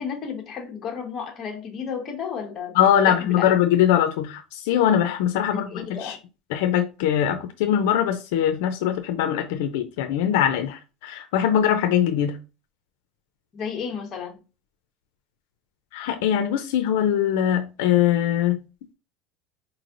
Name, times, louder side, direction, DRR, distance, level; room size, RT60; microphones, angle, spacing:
voice 1, 0.0-2.8 3.1-3.5 5.4-6.2 13.5-14.4, left 6 dB, 35° left, 1.1 m, -32 dB
voice 2, 2.7-6.2 6.5-12.4 15.9-18.6, left 10 dB, 85° left, 0.5 m, -22 dB
4.6 x 3.1 x 2.5 m
supercardioid pair, 135°, 0 cm